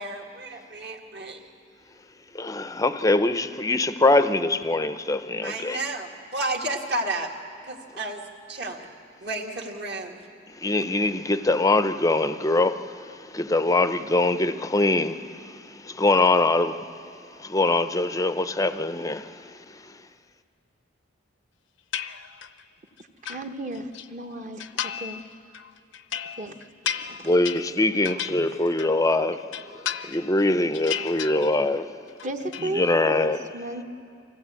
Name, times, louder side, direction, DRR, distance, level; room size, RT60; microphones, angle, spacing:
voice 1, 0.0-1.4 5.4-7.3 7.6-8.2 8.5-8.9 9.2-10.2, right 2 dB, 55° right, 1.9 m, -31 dB
voice 2, 2.3-5.8 10.6-16.8 17.4-19.5 27.2-29.5 30.1-31.9 32.6-33.5, left 2 dB, 15° left, 0.6 m, -23 dB
sound 1, 21.9-22.6 23.0-24.1 24.6-25.2 25.5-29.1 29.4-30.4 30.7-31.8 32.1-32.7, left 9 dB, 70° left, 0.6 m, -34 dB
voice 3, 23.3-24.6 25.0-25.2 26.4-26.5 28.3-28.4 32.2-33.8, right 1 dB, 35° right, 1.1 m, -34 dB
25.5 x 15.5 x 8.3 m
head